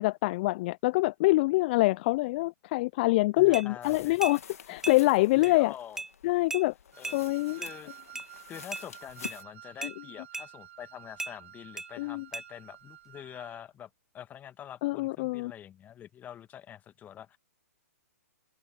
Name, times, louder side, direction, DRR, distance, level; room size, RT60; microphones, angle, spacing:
voice 1, 0.0-4.4 4.7-5.7 6.2-6.7 7.1-7.6 9.8-9.9 12.0-12.3 14.8-15.5, left 21 dB, 40° left, 0.6 m, -25 dB
voice 2, 3.4-4.2 5.4-6.0 7.0-7.1 7.6-7.9 8.5-13.9 14.1-17.4, left 10 dB, 20° left, 1.7 m, -45 dB
sound 1, 3.5-3.7 4.2-4.4 4.8-5.0 5.4-5.5 6.0-6.1 6.5-6.7 7.0-7.2 7.6-7.8 8.2-8.3 8.7-8.9 9.2-9.4 9.8-10.0 10.3-10.5 11.2-11.3 11.8-11.9 12.3-12.5, right 2 dB, 5° right, 1.7 m, -36 dB
sound 2, 3.8-9.4, left 8 dB, 65° left, 2.1 m, -48 dB
Wind instrument woodwind instrument, 6.9-13.7, right 11 dB, 55° right, 5.1 m, -51 dB
open air
figure-of-eight pair, 120°, 9 cm